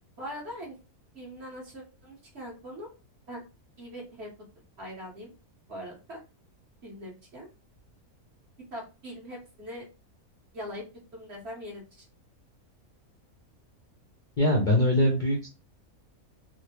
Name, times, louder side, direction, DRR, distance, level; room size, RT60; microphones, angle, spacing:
voice 1, 0.2-0.7 1.1-2.9 3.3-3.4 3.8-4.3 4.8-5.3 5.7-6.2 6.8-7.5 8.7-9.9 10.5-10.8 11.1-12.1, equal, 50° right, -3 dB, 1.4 m, -41 dB
voice 2, 14.4-15.5, left 1 dB, 50° left, -1 dB, 0.6 m, -22 dB
3.6 x 2.1 x 2.9 m, 0.31 s
omnidirectional pair, 1.6 m